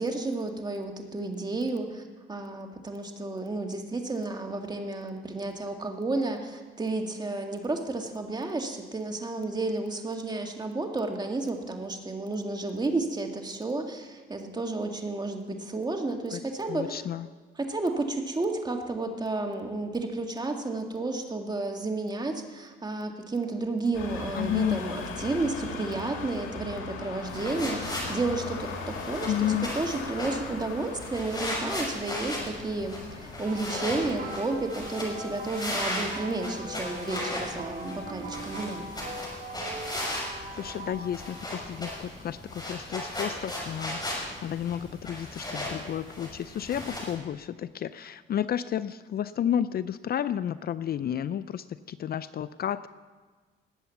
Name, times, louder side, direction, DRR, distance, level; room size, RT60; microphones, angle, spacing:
voice 1, 0.0-17.0 17.6-38.9, right 2 dB, 20° right, 3 dB, 2.1 m, -32 dB
voice 2, 16.7-17.3 24.3-24.8 29.2-29.7 40.2-52.9, left 10 dB, 50° left, 15 dB, 0.5 m, -31 dB
sound 1, 23.9-34.4, left 5 dB, 85° left, 2.4 m, -39 dB
sound 2, 27.3-47.1, left 1 dB, 20° left, 5.9 m, -37 dB
sound 3, 33.5-41.7 42.6-42.8 44.7-44.8, right 1 dB, 50° right, 3.0 m, -41 dB
19.5 x 8.3 x 7.1 m, 1.4 s
cardioid pair, 90°, 20 cm